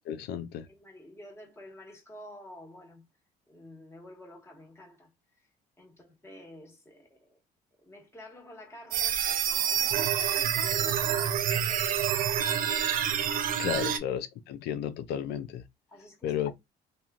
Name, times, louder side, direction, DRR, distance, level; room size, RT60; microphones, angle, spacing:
voice 1, 0.1-0.7 13.6-15.6 16.2-16.5, left 9 dB, 80° left, 0.5 m, -33 dB
voice 2, 0.7-3.1 3.5-5.5 5.8-7.4 7.8-12.8 15.9-16.4, left 1 dB, 15° left, 1.4 m, -49 dB
sound 1, 8.9-14.0, right 9 dB, 55° right, 0.4 m, -27 dB
3.0 x 2.6 x 2.3 m
cardioid pair, 110°, 17 cm